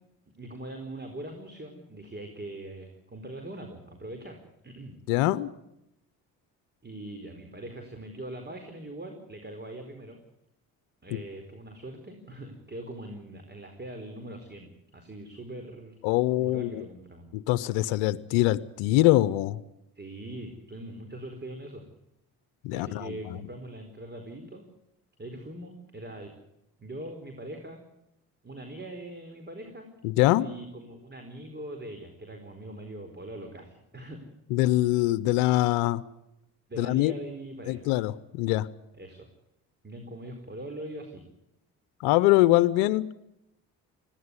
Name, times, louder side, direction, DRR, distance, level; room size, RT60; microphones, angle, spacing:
voice 1, 0.4-4.4 4.6-5.0 6.8-10.2 11.0-16.0 16.4-17.3 19.9-21.8 22.7-24.6 25.2-26.3 26.8-27.8 28.4-29.9 30.4-34.2 36.7-38.0 38.9-39.3 39.8-41.2, right 1 dB, 25° right, 5 dB, 4.5 m, -42 dB
voice 2, 5.1-5.5 11.1-11.2 16.0-16.8 17.3-19.6 22.6-23.4 30.0-30.5 34.5-36.0 36.8-37.1 37.7-38.7 42.0-43.1, left 16 dB, 80° left, 16 dB, 0.8 m, -23 dB
20.5 x 16.5 x 9.7 m, 0.85 s
hypercardioid pair, 55°, 43 cm